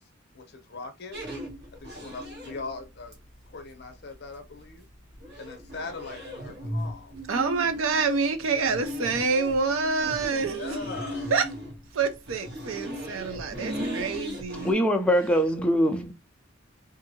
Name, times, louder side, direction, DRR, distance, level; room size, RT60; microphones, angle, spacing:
voice 1, 0.3-1.2 1.7-3.1 3.5-4.9 5.4-7.2 10.5-11.3, left 3 dB, 55° left, 0.7 m, -40 dB
sound 1, 1.1-14.7, equal, 55° right, 1.1 m, -37 dB
voice 2, 7.3-10.8 11.3-11.5 11.9-14.7, right 4 dB, 80° right, 0.5 m, -27 dB
voice 3, 14.6-16.1, equal, 5° left, 0.3 m, -23 dB
2.7 x 2.5 x 2.7 m
head